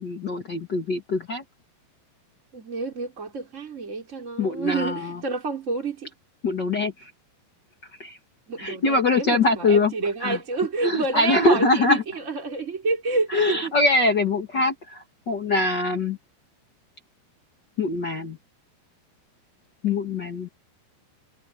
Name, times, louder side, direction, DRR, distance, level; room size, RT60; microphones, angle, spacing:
voice 1, 0.0-1.4 4.4-5.2 6.4-7.1 8.0-8.2 8.6-9.9 10.2-10.4 10.8-12.0 13.3-16.2 17.8-18.4 19.8-20.5, left 3 dB, 65° left, 1.0 m, -23 dB
voice 2, 2.5-6.1 8.5-13.7, right 4 dB, 15° right, 4.3 m, -29 dB
omnidirectional pair, 5.0 m